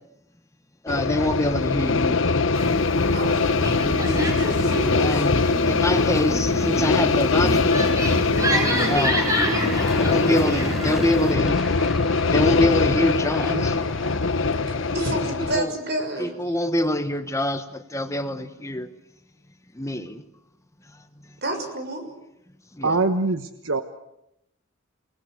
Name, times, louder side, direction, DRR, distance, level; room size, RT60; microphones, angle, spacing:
voice 1, 0.8-2.2 4.9-5.3 5.7-8.0 8.9-9.3 10.0-11.6 12.3-13.8 15.5-15.7 16.2-18.9 19.7-20.2 22.8-23.0, left 1 dB, 15° left, 9 dB, 1.2 m, -25 dB
sound 1, 0.9-15.6, left 3 dB, 65° left, 1.1 m, -22 dB
sound 2, 2.5-11.3, equal, 15° right, 5.7 m, -28 dB
voice 2, 3.1-3.6 4.0-5.4 14.7-16.6 21.4-22.1, right 1 dB, 55° right, 5 dB, 6.6 m, -31 dB
Aircraft / Engine, 7.8-15.8, left 1 dB, ahead, 3.6 m, -35 dB
voice 3, 22.8-23.8, right 3 dB, 70° right, 9 dB, 1.2 m, -23 dB
29.5 x 20.0 x 8.4 m, 0.83 s
head